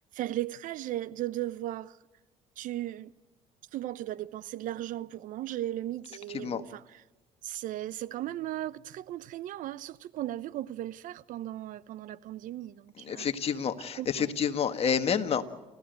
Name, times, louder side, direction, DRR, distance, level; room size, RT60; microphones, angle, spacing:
voice 1, 0.1-2.0 2.6-3.1 3.7-7.0 7.4-13.3 14.0-14.3, right 14 dB, 65° right, 0.8 m, -36 dB
voice 2, 13.1-15.4, left 7 dB, 40° left, 1.7 m, -29 dB
29.0 x 15.0 x 8.1 m
supercardioid pair, 95°, 15 cm